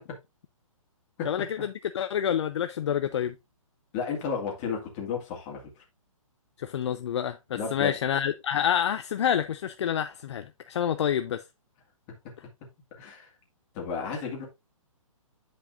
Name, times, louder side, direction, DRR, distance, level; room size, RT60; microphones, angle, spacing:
voice 1, 1.2-3.3 6.6-11.4, left 9 dB, 55° left, 0.5 m, -28 dB
voice 2, 3.9-5.6 7.5-8.0 12.9-13.3 13.7-14.4, left 6 dB, 25° left, 2.1 m, -32 dB
9.0 x 5.2 x 2.5 m
hypercardioid pair, 155°, 18 cm